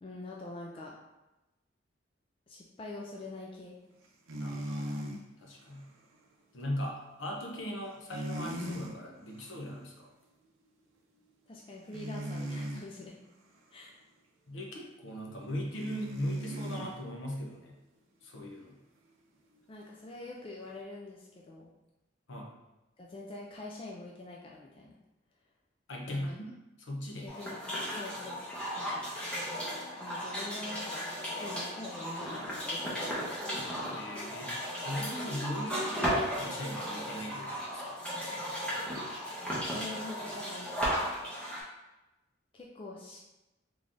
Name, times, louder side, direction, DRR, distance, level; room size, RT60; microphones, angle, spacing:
voice 1, 0.0-1.0 2.5-3.8 11.5-13.2 13.7-13.9 19.7-21.7 23.0-25.0 26.1-26.4 27.2-27.6 27.9-28.5 28.8-29.0 30.0-31.0 31.4-33.3 39.7-40.8 42.5-43.2, left 2 dB, 25° left, -2 dB, 0.3 m, -45 dB
sound 1, 4.3-5.2 8.1-9.0 9.4-9.6 11.9-12.9 15.7-17.0 20.1-20.2, equal, 85° right, 0.5 m, -38 dB
voice 2, 4.4-5.1 5.4-5.9 6.5-10.1 14.5-17.8 18.2-18.8 22.3-22.5 25.9-26.5 26.8-27.3 33.9-37.8, equal, 70° left, 0 dB, 0.7 m, -39 dB
sound 2, 27.3-41.6, equal, 5° left, 0.8 m, -35 dB
3.6 x 3.2 x 2.5 m, 1.0 s
head